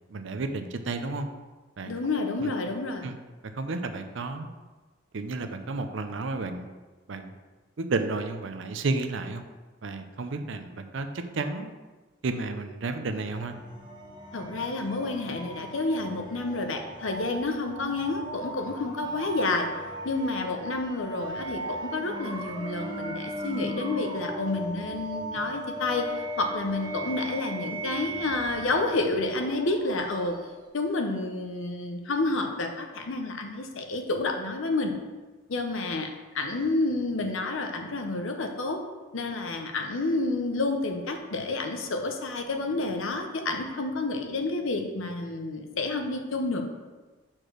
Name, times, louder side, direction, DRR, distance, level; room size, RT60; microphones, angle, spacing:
voice 1, 0.1-1.3 1.8-1.9 2.4-2.5 3.0-3.1 3.5-4.5 5.1-6.7 7.1-7.3 7.8-9.4 9.8-11.7 12.2-13.5, right 3 dB, 65° right, 8 dB, 0.5 m, -32 dB
voice 2, 1.9-3.1 14.3-19.7 20.0-30.4 30.7-34.9 35.5-36.1 36.3-38.8 39.1-46.6, left 2 dB, 75° left, 5 dB, 0.8 m, -29 dB
sound 1, 13.1-30.6, right 1 dB, 20° right, 0.8 m, -37 dB
4.9 x 4.5 x 6.1 m, 1.3 s
head